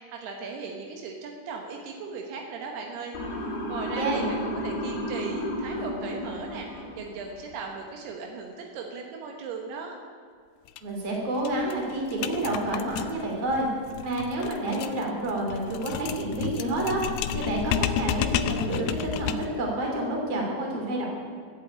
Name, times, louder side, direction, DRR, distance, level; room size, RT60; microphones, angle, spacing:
voice 1, 0.0-3.1 3.4-10.0, right 4 dB, 80° right, 2 dB, 3.2 m, -37 dB
Motor vehicle (road) / Siren, 3.1-7.3, equal, 65° left, 4.7 m, -33 dB
sound 1, 10.7-10.8 11.1-11.2 11.5-19.6, left 10 dB, 80° left, 2.5 m, -31 dB
voice 2, 10.8-13.7 14.0-17.0 17.3-21.1, right 1 dB, 40° right, -1 dB, 3.6 m, -29 dB
15.0 x 8.3 x 8.7 m, 2.2 s
omnidirectional pair, 4.7 m